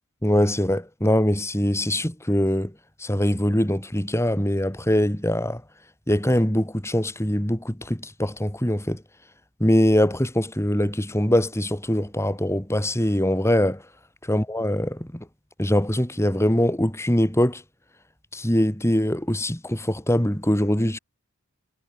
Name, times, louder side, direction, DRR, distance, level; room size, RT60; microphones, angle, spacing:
voice 1, 0.2-2.7 3.0-5.6 6.1-9.0 9.6-13.8 14.2-15.3 15.6-17.6 18.3-21.0, left 1 dB, 10° left, 2.9 m, -22 dB
head